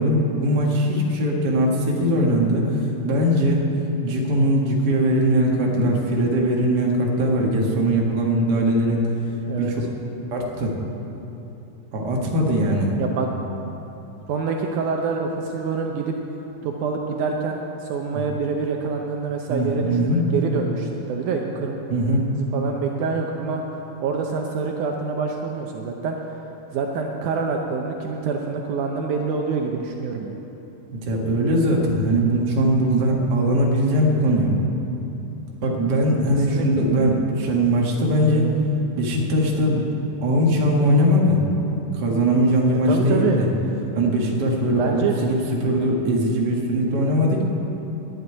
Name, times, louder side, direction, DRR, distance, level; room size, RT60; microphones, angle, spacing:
voice 1, 0.0-2.6 3.0-3.6 4.0-9.1 9.6-9.8 10.3-10.7 11.9-12.9 18.1-18.2 19.5-20.2 21.9-22.2 30.9-34.5 35.6-38.5 39.0-39.8 40.2-41.4 41.9-43.5 43.9-47.4, equal, 40° right, -2 dB, 1.6 m, -20 dB
voice 2, 12.9-13.3 14.3-16.2 16.6-21.8 22.3-26.4 26.7-30.3 36.5-36.8 42.7-43.4 44.7-45.1, right 5 dB, 75° right, 2 dB, 2.1 m, -26 dB
11.0 x 7.7 x 9.4 m, 3.0 s
omnidirectional pair, 3.9 m